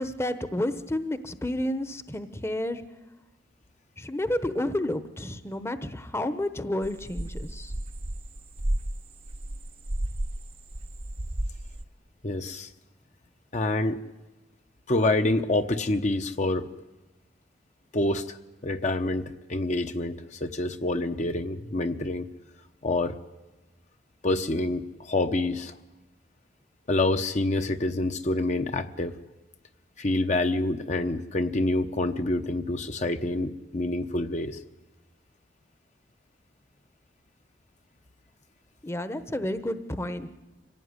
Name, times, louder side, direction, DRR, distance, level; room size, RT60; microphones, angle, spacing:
voice 1, 0.0-2.8 4.0-7.7 38.8-40.3, left 1 dB, 15° left, 11 dB, 1.0 m, -30 dB
sound 1, 6.8-10.4 10.7-11.8, right 1 dB, 35° right, 0.8 m, -32 dB
voice 2, 12.2-12.7 13.5-14.0 14.9-16.7 17.9-18.4 18.6-22.3 22.8-23.2 24.2-25.8 26.9-29.2 30.0-34.6, left 2 dB, 45° left, 7 dB, 1.0 m, -27 dB
25.0 x 16.5 x 9.7 m, 1.1 s
head